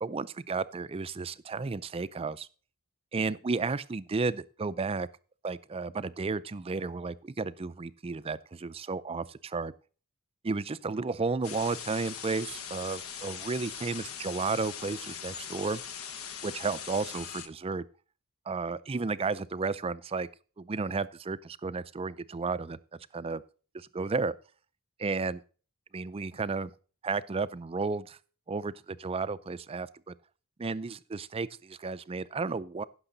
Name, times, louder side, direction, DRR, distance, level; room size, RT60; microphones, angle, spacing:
voice 1, 0.0-2.5 3.1-5.1 5.4-9.7 10.4-15.8 16.4-17.9 18.5-20.3 20.6-22.8 23.1-23.4 23.7-24.3 25.0-25.4 25.9-26.7 27.0-28.2 28.5-30.1 30.6-32.8, right 4 dB, 25° right, 0.4 m, -33 dB
sound 1, 11.4-17.5, left 8 dB, 70° left, 1.1 m, -41 dB
16.0 x 6.3 x 3.9 m
head